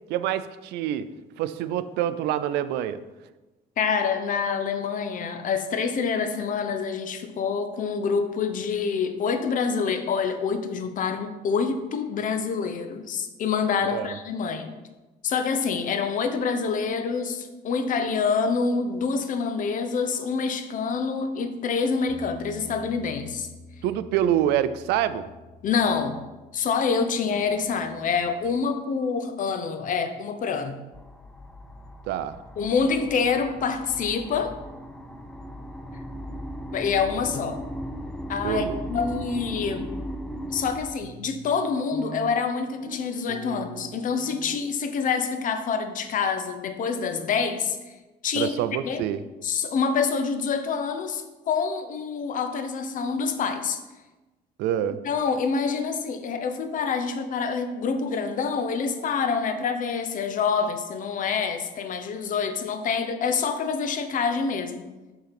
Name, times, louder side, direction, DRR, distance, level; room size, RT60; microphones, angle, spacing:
voice 1, 0.1-1.1 1.4-3.0 13.8-14.1 23.8-25.3 32.1-32.4 38.4-38.8 48.3-49.2 54.6-55.0, right 11 dB, 85° right, 13 dB, 0.4 m, -26 dB
voice 2, 3.8-14.7 15.2-23.5 25.6-26.2 26.5-30.8 32.6-34.5 36.7-37.6 38.3-39.9 40.5-47.8 48.2-48.5 48.8-49.0 49.4-53.8 55.0-64.8, left 5 dB, 50° left, 8 dB, 0.8 m, -26 dB
sound 1, 22.1-28.3, equal, 70° right, 1.2 m, -47 dB
sound 2, 30.9-40.8, equal, 5° left, 0.5 m, -37 dB
sound 3, 40.4-44.9, right 5 dB, 40° right, 0.7 m, -45 dB
5.5 x 3.8 x 5.9 m, 1.1 s
cardioid pair, 110°, 17 cm